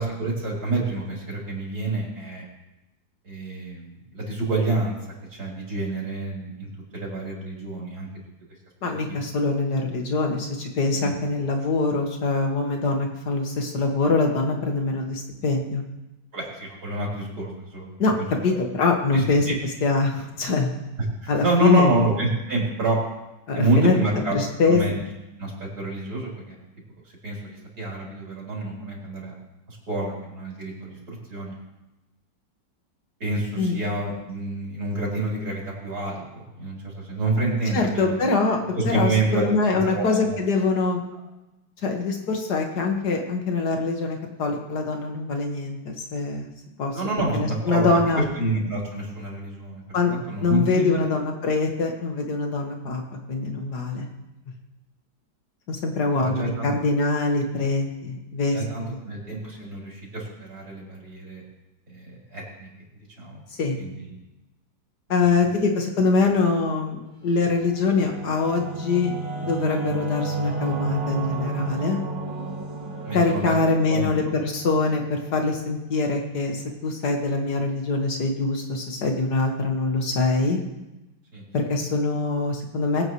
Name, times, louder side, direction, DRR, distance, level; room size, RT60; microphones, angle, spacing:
voice 1, 0.0-2.5 3.2-4.9 5.4-8.1 8.8-8.9 10.9-11.1 16.3-18.1 18.5-18.6 19.1-19.5 21.2-23.0 23.5-24.4 24.6-25.0 25.4-26.6 27.2-29.3 29.7-31.5 33.2-38.2 38.8-40.4 46.9-49.8 50.1-51.0 56.1-56.7 58.5-61.4 61.9-62.7 63.2-63.4 63.8-64.1 65.2-65.3 73.0-73.5 73.9-74.1 81.3-81.4, right 2 dB, 50° right, -4 dB, 4.3 m, -28 dB
voice 2, 8.8-15.8 18.0-18.1 18.4-19.5 19.8-20.7 21.3-21.9 23.5-24.0 24.3-24.8 33.6-33.7 37.7-41.0 41.8-46.5 46.8-47.0 47.3-48.3 49.9-50.1 50.4-53.0 53.3-54.1 55.7-59.0 63.6-63.8 65.1-72.0 73.1-80.6 81.5-83.0, left 3 dB, 60° left, 2 dB, 2.2 m, -24 dB
Singing / Musical instrument, 67.3-76.5, right 3 dB, 75° right, 2.7 m, -33 dB
21.5 x 8.8 x 3.1 m, 0.98 s
omnidirectional pair, 2.1 m